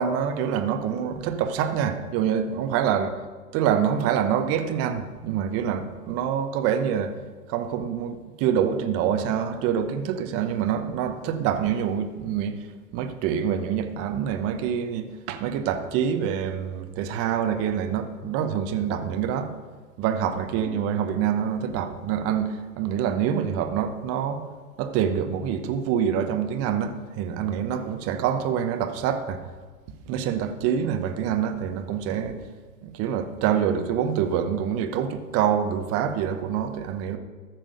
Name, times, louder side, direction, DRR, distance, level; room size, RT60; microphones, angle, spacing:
voice 1, 0.0-3.1 3.5-7.1 7.5-12.6 12.9-19.5 20.0-24.4 24.8-29.4 30.1-32.4 32.8-37.2, right 8 dB, 30° right, 1.0 m, -26 dB
13.5 x 6.1 x 6.6 m
hypercardioid pair, 115°, 46 cm